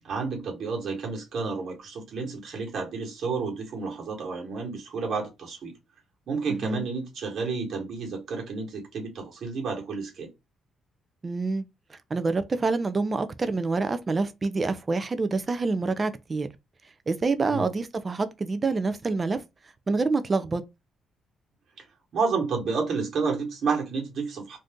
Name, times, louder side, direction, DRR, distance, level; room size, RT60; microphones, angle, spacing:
voice 1, 0.0-5.7 6.3-10.3 17.5-17.7 22.1-24.6, right 4 dB, 60° right, 1.4 m, -30 dB
voice 2, 6.5-6.9 11.2-11.6 11.9-16.5 17.1-19.4 19.9-20.6, right 3 dB, 30° right, 0.5 m, -27 dB
2.7 x 2.4 x 3.5 m
cardioid pair, 90°, 0 cm